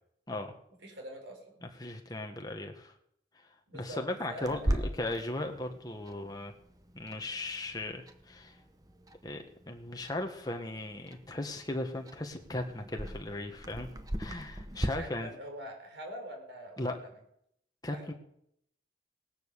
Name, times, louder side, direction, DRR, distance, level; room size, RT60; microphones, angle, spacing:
voice 1, 0.8-1.6 3.7-4.0 4.3-4.8 15.0-17.1 17.9-18.1, equal, 90° right, 2 dB, 4.5 m, -44 dB
voice 2, 1.6-2.9 3.7-6.5 6.9-8.6 9.2-13.9 14.2-15.3 16.8-17.0 17.8-18.1, left 1 dB, 20° left, 4 dB, 1.7 m, -37 dB
Clock, 4.4-14.9, right 1 dB, 20° right, 1.1 m, -40 dB
18.0 x 10.5 x 6.9 m, 0.73 s
head